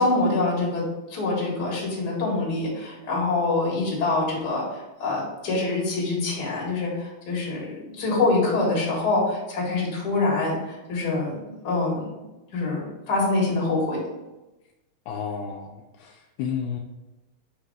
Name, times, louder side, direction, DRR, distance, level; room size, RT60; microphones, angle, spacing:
voice 1, 0.0-12.2 12.5-14.0, left 2 dB, 40° left, -4 dB, 1.8 m, -25 dB
voice 2, 15.1-16.8, left 7 dB, 80° left, 1 dB, 1.9 m, -32 dB
6.1 x 3.3 x 4.7 m, 1.0 s
omnidirectional pair, 3.7 m